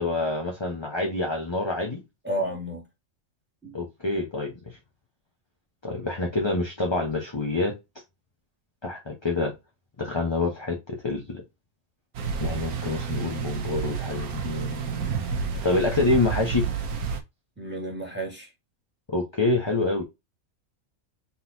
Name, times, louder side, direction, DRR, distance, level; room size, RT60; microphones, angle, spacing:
voice 1, 0.0-2.0 3.7-4.6 5.8-7.7 8.8-9.5 10.0-11.4 12.4-15.1 15.6-16.7 19.1-20.0, left 3 dB, 20° left, 0.9 m, -27 dB
voice 2, 2.2-2.8 3.6-3.8 13.9-14.0 17.6-18.5, right 1 dB, 5° right, 2.2 m, -31 dB
sound 1, 12.1-17.2, right 6 dB, 90° right, 1.4 m, -30 dB
4.2 x 3.9 x 2.8 m
omnidirectional pair, 1.5 m